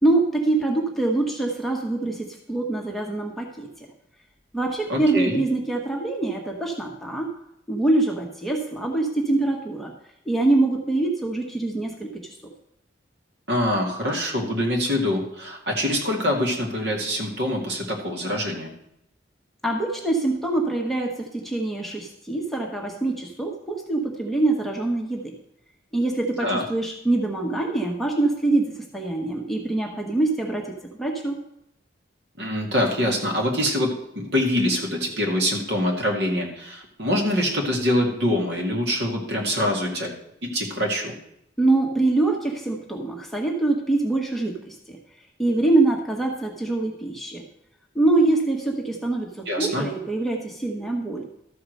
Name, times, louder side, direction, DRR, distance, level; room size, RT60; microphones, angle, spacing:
voice 1, 0.0-3.7 4.5-7.3 7.7-9.9 10.2-12.3 19.6-25.3 25.9-31.4 41.6-45.0 45.4-47.4 47.9-51.2, right 2 dB, ahead, -1 dB, 1.2 m, -24 dB
voice 2, 4.9-5.4 13.5-18.7 26.4-26.6 32.4-40.1 40.4-41.1 49.5-49.9, left 1 dB, 60° right, 0 dB, 2.1 m, -24 dB
13.0 x 4.9 x 6.5 m, 0.78 s
head